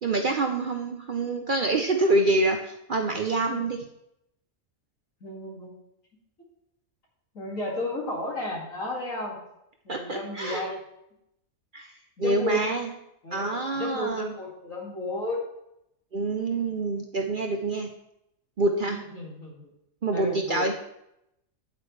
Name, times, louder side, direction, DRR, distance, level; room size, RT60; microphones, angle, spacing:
voice 1, 0.0-3.8 9.9-10.6 11.7-11.9 12.2-12.9 13.3-14.3 16.1-17.9 18.6-19.0 20.0-20.7, right 2 dB, 50° right, 4 dB, 0.7 m, -26 dB
voice 2, 5.2-5.7 7.3-9.4 9.8-10.8 12.2-12.6 13.2-15.4 18.7-19.7 20.1-20.6, left 1 dB, 70° left, -3 dB, 2.8 m, -33 dB
9.1 x 8.4 x 3.2 m, 0.81 s
omnidirectional pair, 1.4 m